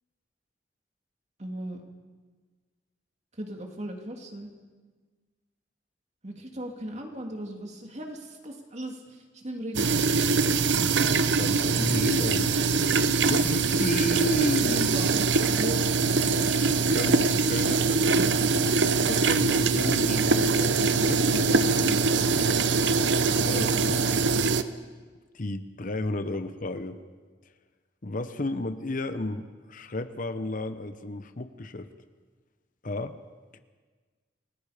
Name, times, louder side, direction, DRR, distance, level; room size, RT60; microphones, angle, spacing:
voice 1, 1.4-1.8 3.4-4.5 6.2-9.9 14.6-15.8 23.3-23.8, right 1 dB, 40° right, 2 dB, 2.7 m, -37 dB
sound 1, 9.7-24.6, right 4 dB, 75° right, 0.9 m, -23 dB
voice 2, 11.4-12.5 13.3-14.9 16.0-18.4 19.0-22.5 23.3-24.0 25.3-27.0 28.0-31.9 32.8-33.2 33.5-33.6, left 2 dB, 45° left, 10 dB, 1.0 m, -33 dB
29.5 x 19.0 x 5.1 m, 1.4 s
head